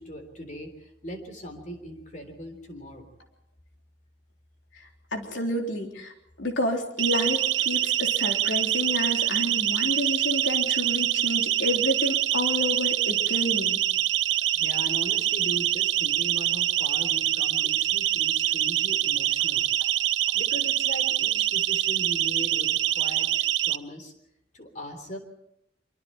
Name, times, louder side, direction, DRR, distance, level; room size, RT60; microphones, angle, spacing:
voice 1, 0.0-3.1 14.5-19.6 19.9-20.0 20.3-24.1 24.5-25.2, equal, 40° left, 5 dB, 3.7 m, -39 dB
voice 2, 5.1-6.1 6.4-13.8, left 1 dB, 80° left, 2 dB, 3.6 m, -29 dB
Siren, 7.0-23.8, right 12 dB, 80° right, 0.7 m, -25 dB
25.0 x 25.0 x 4.4 m, 0.79 s
head